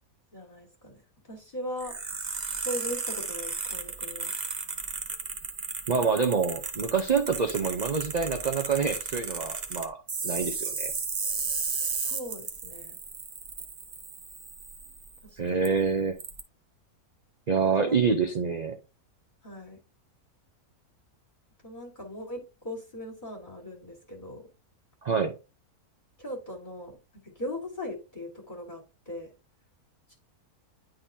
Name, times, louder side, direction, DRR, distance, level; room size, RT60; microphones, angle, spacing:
voice 1, 0.3-2.0 2.6-4.3 12.0-13.0 15.2-15.7 17.8-18.0 19.4-19.8 21.6-24.4 26.2-27.0 27.2-29.3 30.1-30.2, left 1 dB, 30° left, 1.9 m, -39 dB
sound 1, 1.8-15.2 15.6-15.7 16.2-16.4, right 5 dB, 35° right, 0.8 m, -34 dB
voice 2, 5.9-10.0 10.2-10.9 15.4-16.2 17.5-18.8 25.0-25.3, right 5 dB, 75° right, 0.4 m, -26 dB
10.0 x 3.9 x 2.7 m
omnidirectional pair, 1.6 m